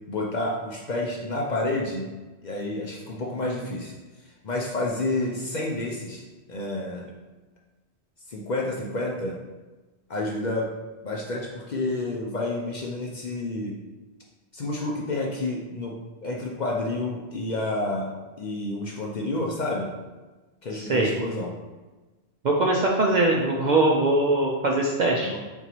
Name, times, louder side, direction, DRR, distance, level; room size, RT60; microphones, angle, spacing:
voice 1, 0.1-2.1 2.4-3.9 4.4-6.2 6.5-7.1 8.3-9.4 10.1-10.7 11.0-13.8 14.5-18.1 18.4-19.9 20.6-21.5 25.2-25.4, left 2 dB, 50° left, -1 dB, 0.6 m, -29 dB
voice 2, 20.7-21.1 22.4-25.3, right 2 dB, 55° right, -1 dB, 0.5 m, -22 dB
4.4 x 3.8 x 2.9 m, 1.2 s
omnidirectional pair, 1.2 m